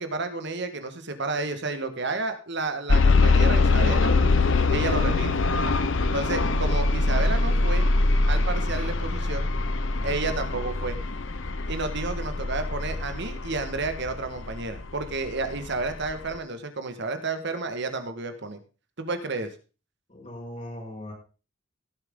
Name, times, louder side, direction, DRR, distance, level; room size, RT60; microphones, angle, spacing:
voice 1, 0.0-4.1 4.7-5.3 6.1-7.9 8.3-9.5 10.0-11.0 11.7-18.6 19.0-19.5, right 3 dB, 60° right, 9 dB, 1.6 m, -31 dB
sound 1, 2.9-14.8 15.5-15.6 16.1-16.2, left 3 dB, 65° left, 0.9 m, -23 dB
voice 2, 20.1-21.1, left 1 dB, 35° left, -3 dB, 5.3 m, -39 dB
17.5 x 7.7 x 3.7 m, 0.33 s
head